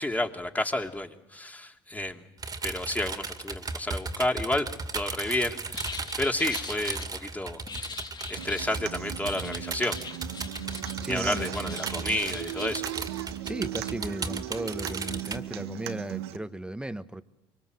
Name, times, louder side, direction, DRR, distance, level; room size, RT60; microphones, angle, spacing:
voice 1, 0.0-2.2 2.6-4.7 4.9-8.0 8.3-10.0 11.1-12.9, left 1 dB, 10° left, 2.9 m, -31 dB
sound 1, 2.4-15.4, right 4 dB, 30° right, 2.4 m, -36 dB
sound 2, 5.7-7.0 7.7-8.7 9.3-11.0 11.3-12.7, left 4 dB, 30° left, 2.4 m, -41 dB
Human voice / Acoustic guitar, 8.4-16.4, right 13 dB, 85° right, 1.4 m, -37 dB
voice 2, 11.0-11.6 13.4-17.2, right 1 dB, 5° right, 1.4 m, -35 dB
25.5 x 24.0 x 7.9 m
hypercardioid pair, 65°, 13 cm